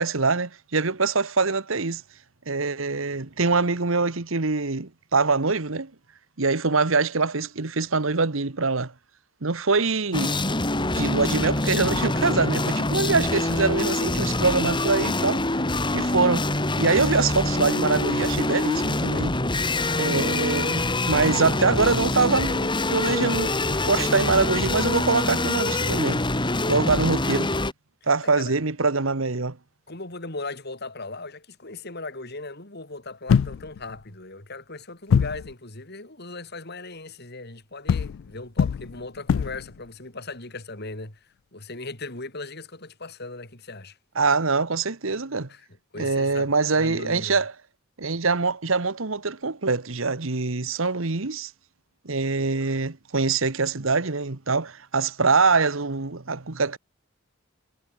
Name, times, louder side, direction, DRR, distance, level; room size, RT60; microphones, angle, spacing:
voice 1, 0.0-2.0 2.5-5.9 6.4-8.9 9.4-10.4 10.9-15.4 15.9-16.5 16.8-19.4 20.0-26.2 26.7-27.5 28.1-29.6 44.1-45.5 46.0-47.5 48.0-51.5 52.0-56.8, right 4 dB, 75° right, 1.4 m, -24 dB
sound 1, 10.1-27.7, left 2 dB, 25° left, 2.4 m, -25 dB
voice 2, 19.8-20.4 28.4-28.6 29.9-44.0 45.5-45.7 45.9-46.5 46.8-47.4, left 3 dB, 55° left, 4.7 m, -38 dB
sound 2, 33.3-34.0 35.1-35.5 37.9-39.8, left 7 dB, 70° left, 0.3 m, -23 dB
head